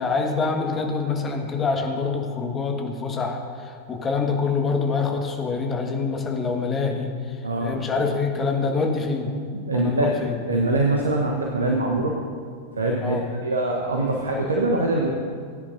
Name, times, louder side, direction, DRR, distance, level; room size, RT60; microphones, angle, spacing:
voice 1, 0.0-7.1 7.6-9.3 9.7-10.4 13.0-13.2, left 4 dB, 20° left, 2 dB, 1.6 m, -25 dB
voice 2, 7.4-7.8 9.5-12.1 12.8-13.2 13.4-15.1, right 2 dB, 75° right, 0 dB, 1.1 m, -23 dB
19.5 x 9.8 x 2.7 m, 2.1 s
figure-of-eight pair, 90°, 0 cm